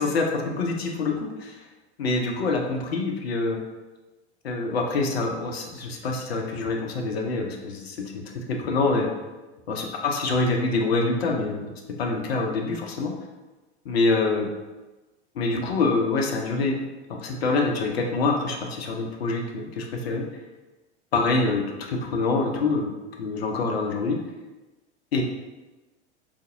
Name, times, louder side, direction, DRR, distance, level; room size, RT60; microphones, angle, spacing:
voice 1, 0.0-1.6 2.0-3.6 4.4-9.1 9.7-11.7 12.0-13.1 13.8-14.5 15.3-16.8 17.1-20.2 21.1-22.9 23.2-24.2 25.1-25.2, left 3 dB, 65° left, 2 dB, 0.7 m, -25 dB
3.9 x 3.3 x 2.7 m, 1.1 s
figure-of-eight pair, 85°, 34 cm